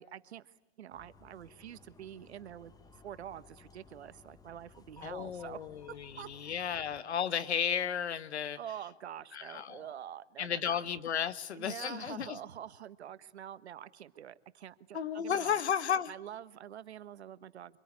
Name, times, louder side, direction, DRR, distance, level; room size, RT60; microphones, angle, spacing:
voice 1, 0.0-5.6 6.2-6.5 8.6-10.8 11.5-15.6 16.1-17.8, right 10 dB, 80° right, 14 dB, 1.4 m, -46 dB
sound 1, 0.9-7.0, left 4 dB, 10° left, 1.3 m, -59 dB
voice 2, 5.0-8.6 9.3-9.8 10.4-12.4 14.9-16.1, left 8 dB, 85° left, 14 dB, 1.5 m, -33 dB
26.0 x 22.0 x 9.7 m, 1.0 s
hypercardioid pair, 125°, 32 cm